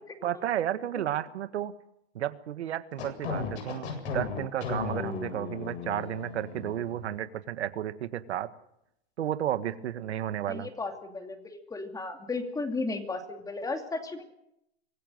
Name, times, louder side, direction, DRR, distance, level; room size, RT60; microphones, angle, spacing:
voice 1, 0.2-1.7 2.1-8.5 9.2-10.7, right 11 dB, 85° right, 12 dB, 1.6 m, -32 dB
sound 1, 3.0-7.1, left 5 dB, 75° left, 7.9 m, -36 dB
voice 2, 10.5-14.3, left 3 dB, 10° left, 6 dB, 2.7 m, -34 dB
25.0 x 16.0 x 7.9 m, 0.79 s
hypercardioid pair, 140°, 33 cm